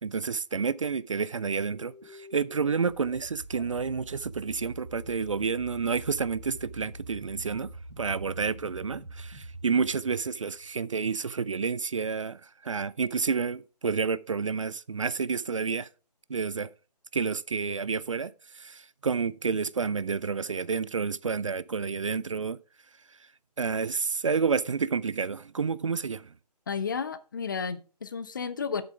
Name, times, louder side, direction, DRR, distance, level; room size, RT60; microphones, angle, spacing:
voice 1, 0.0-7.7 8.0-15.9 16.3-16.7 17.1-22.6 23.6-26.3, right 5 dB, 50° right, 0.4 m, -30 dB
sound 1, 1.7-11.0, right 1 dB, 80° right, 1.9 m, -45 dB
voice 2, 26.7-28.8, left 6 dB, 30° left, 0.6 m, -32 dB
7.9 x 6.9 x 4.8 m
figure-of-eight pair, 145°, 21 cm